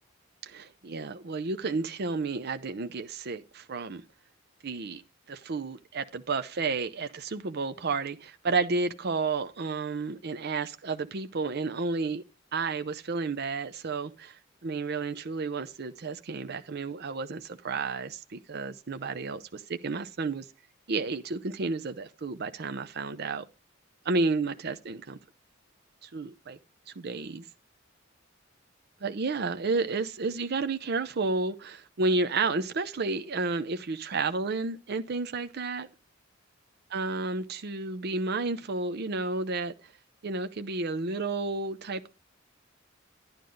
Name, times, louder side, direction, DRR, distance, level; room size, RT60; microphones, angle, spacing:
voice 1, 0.4-4.0 4.6-5.0 5.3-12.2 12.5-20.5 20.9-23.4 24.0-25.2 26.0-26.6 26.9-27.4 29.0-35.9 36.9-39.7 40.2-42.1, right 3 dB, 55° right, 0.6 m, -31 dB
12.0 x 9.4 x 3.9 m
head